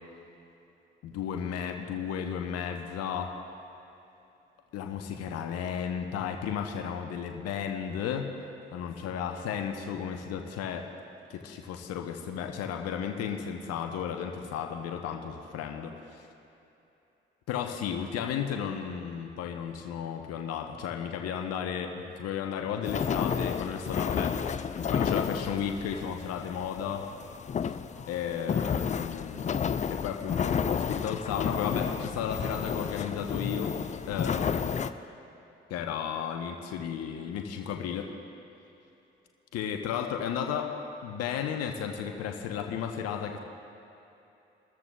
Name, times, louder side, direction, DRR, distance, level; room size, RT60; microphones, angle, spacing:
voice 1, 1.0-3.3 4.7-8.3 8.7-10.9 11.3-15.9 17.5-24.4 24.9-27.1 28.1-29.5 29.9-33.7 34.1-34.7 35.7-38.1 39.5-40.8 41.0-43.4, left 8 dB, 55° left, 4 dB, 1.0 m, -34 dB
sound 1, 22.8-34.9, left 7 dB, 25° left, 0.4 m, -31 dB
22.5 x 13.5 x 2.4 m, 2.9 s
figure-of-eight pair, 40°, 29 cm